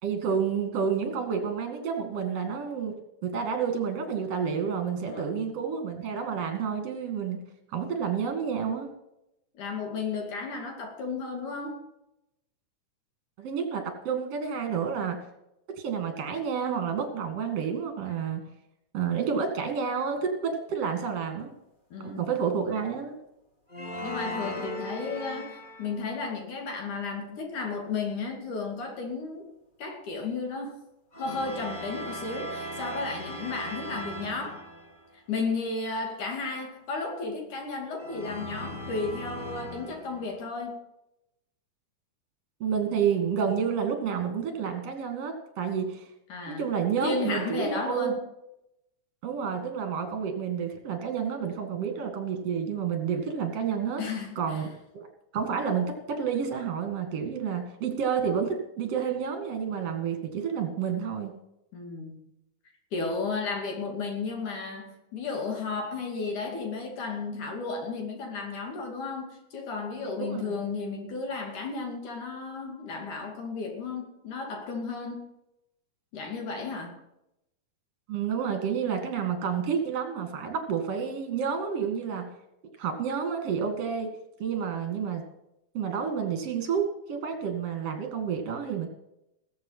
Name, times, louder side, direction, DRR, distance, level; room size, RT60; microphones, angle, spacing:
voice 1, 0.0-2.9 3.2-7.4 7.7-8.9 13.4-15.2 15.8-18.4 18.9-21.5 22.0-23.2 42.6-46.1 46.5-48.2 49.2-54.0 54.4-54.7 55.3-61.3 70.2-70.6 78.1-82.3 82.8-84.1 84.4-85.2 85.7-88.9, right 7 dB, 55° right, 5 dB, 3.2 m, -29 dB
voice 2, 5.1-5.5 9.6-11.8 21.9-22.2 24.0-29.5 29.8-30.8 31.1-34.6 35.3-40.8 46.3-46.7 47.0-48.2 54.0-54.7 61.7-62.2 62.9-75.3 76.1-77.0, left 4 dB, 90° left, 2 dB, 4.0 m, -33 dB
sound 1, 23.7-26.1 31.1-35.1 38.0-40.4, equal, 25° left, 1.4 m, -38 dB
19.5 x 7.7 x 5.7 m, 0.85 s
omnidirectional pair, 3.4 m